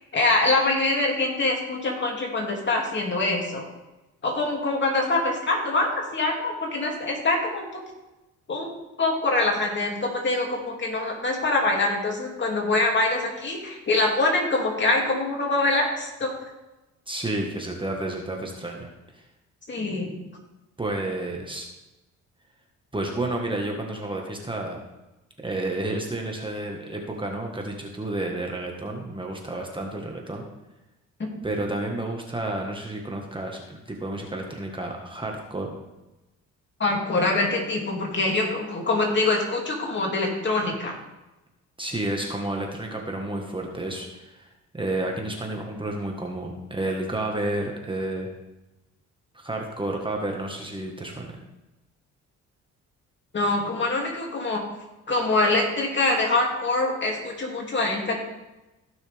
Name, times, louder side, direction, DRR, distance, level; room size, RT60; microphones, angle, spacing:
voice 1, 0.1-3.6 4.2-7.8 8.5-8.7 9.0-16.3 19.7-20.1 36.8-41.0 53.3-54.6 55.1-58.2, left 2 dB, 40° left, 0 dB, 2.7 m, -24 dB
voice 2, 17.1-19.2 20.8-21.6 22.9-24.8 25.4-30.5 31.4-35.8 41.8-48.3 49.3-51.3, right 1 dB, 15° right, 1 dB, 1.6 m, -31 dB
15.5 x 6.3 x 3.5 m, 1.0 s
cardioid pair, 90°, 30 cm